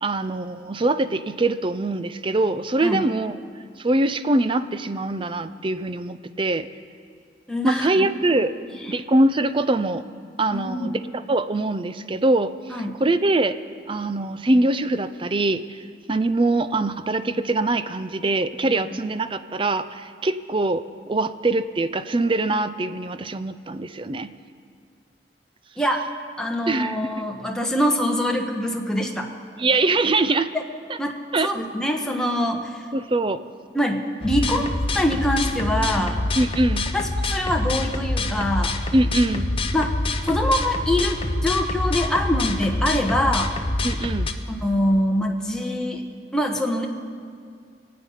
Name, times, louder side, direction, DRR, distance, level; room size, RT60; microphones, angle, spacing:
voice 1, 0.0-3.4 3.8-6.7 7.6-8.5 8.9-10.0 10.4-11.0 11.3-12.5 13.0-13.6 13.9-15.8 16.1-24.3 26.7-27.1 29.6-30.5 30.9-31.0 31.3-31.5 32.9-33.4 36.4-36.9 38.9-39.5 43.8-44.3, right 2 dB, 30° right, 12 dB, 0.5 m, -23 dB
voice 2, 7.5-8.1 8.3-8.4 8.8-8.9 10.5-10.9 12.7-12.9 25.8-26.1 26.4-29.3 30.5-30.6 31.0-31.1 31.4-32.8 33.7-34.7 34.9-36.2 36.9-38.8 39.7-39.9 40.3-43.5 44.5-46.0 46.3-46.9, equal, 5° left, 1 dB, 1.2 m, -24 dB
sound 1, 34.2-44.3, left 2 dB, 30° left, 0.7 m, -26 dB
24.5 x 8.7 x 5.7 m, 2.2 s
head